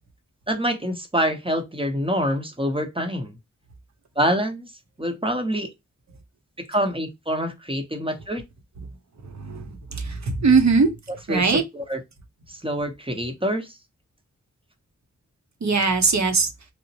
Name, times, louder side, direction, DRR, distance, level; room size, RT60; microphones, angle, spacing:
voice 1, 0.5-3.4 4.2-4.7 5.0-5.7 6.7-8.4 11.3-11.4 11.7-12.0 12.5-13.8, equal, 15° right, 0.8 m, -26 dB
voice 2, 9.2-10.9 11.3-11.6 15.6-16.5, right 4 dB, 65° right, 0.8 m, -20 dB
2.9 x 2.1 x 2.6 m
wide cardioid pair, 70°, 30 cm